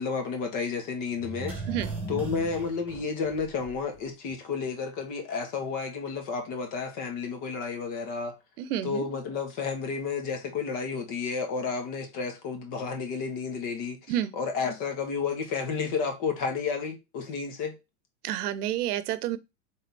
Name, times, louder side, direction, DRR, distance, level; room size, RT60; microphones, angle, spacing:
voice 1, 0.0-1.6 2.1-8.3 8.8-14.0 14.3-17.7, left 5 dB, 45° left, 1.4 m, -31 dB
sound 1, 1.2-4.0 4.3-4.4, right 2 dB, 5° right, 1.6 m, -37 dB
voice 2, 8.6-9.0 14.1-14.3 18.2-19.4, right 12 dB, 85° right, 0.7 m, -29 dB
3.8 x 3.3 x 4.1 m
supercardioid pair, 135°, 45 cm